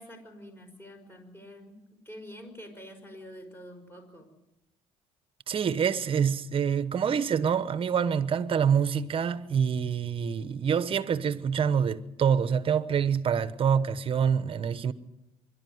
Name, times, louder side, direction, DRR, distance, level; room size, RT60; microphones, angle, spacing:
voice 1, 0.0-4.4, equal, 15° left, 5.4 m, -47 dB
voice 2, 5.5-14.9, right 7 dB, 40° right, 1.1 m, -26 dB
25.0 x 12.0 x 9.4 m
cardioid pair, 100°, 14 cm